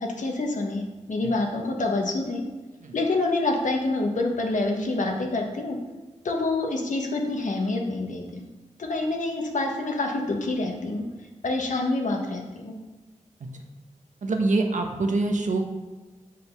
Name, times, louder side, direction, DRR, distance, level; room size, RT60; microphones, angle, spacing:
voice 1, 0.2-0.8 1.1-2.4 2.9-5.8 6.2-8.4 8.8-11.0 11.4-12.7, left 2 dB, 80° left, 2 dB, 1.3 m, -27 dB
voice 2, 14.2-15.6, right 2 dB, 80° right, 3 dB, 1.1 m, -25 dB
7.9 x 5.1 x 5.7 m, 1.2 s
wide cardioid pair, 115°, 13 cm